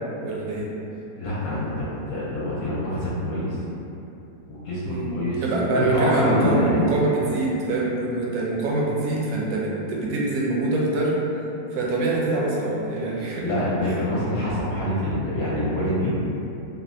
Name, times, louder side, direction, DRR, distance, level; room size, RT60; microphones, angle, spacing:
voice 1, 0.2-0.7 4.8-5.1 5.4-11.2 11.7-13.5 13.9-14.0, right 2 dB, 75° right, -4 dB, 1.0 m, -24 dB
voice 2, 1.2-3.6 4.5-6.8 13.4-16.1, left 1 dB, 75° left, -8 dB, 1.1 m, -25 dB
3.2 x 2.0 x 2.5 m, 2.9 s
omnidirectional pair, 1.8 m